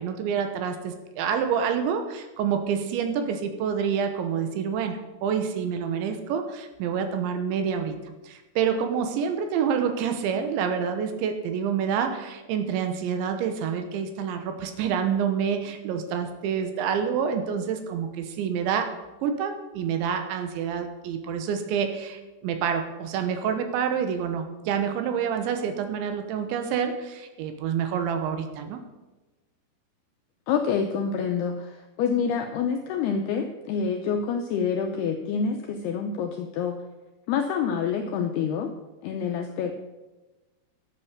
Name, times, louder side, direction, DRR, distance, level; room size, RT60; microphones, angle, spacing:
voice 1, 0.0-8.0 8.2-18.9 19.2-28.8, right 7 dB, 75° right, 7 dB, 3.2 m, -27 dB
voice 2, 30.5-36.8 37.3-38.7 39.0-39.8, left 6 dB, 80° left, 4 dB, 2.3 m, -27 dB
12.0 x 7.9 x 6.5 m, 1.1 s
omnidirectional pair, 5.5 m